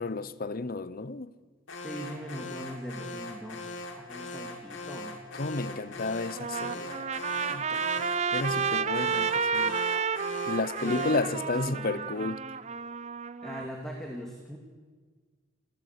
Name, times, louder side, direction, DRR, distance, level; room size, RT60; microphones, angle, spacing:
voice 1, 0.0-1.3 5.3-7.9 8.3-9.8 10.5-12.4, left 3 dB, 45° left, 0.7 m, -32 dB
Alarm, 1.7-11.4, left 2 dB, 70° left, 2.8 m, -41 dB
voice 2, 1.8-3.7 3.9-5.2 10.8-12.2 13.4-14.6, equal, ahead, 2.3 m, -40 dB
Trumpet, 6.2-13.7, right 6 dB, 35° right, 0.6 m, -31 dB
Bowed string instrument, 7.6-12.3, left 5 dB, 20° left, 7.9 m, -52 dB
28.5 x 14.5 x 8.2 m
head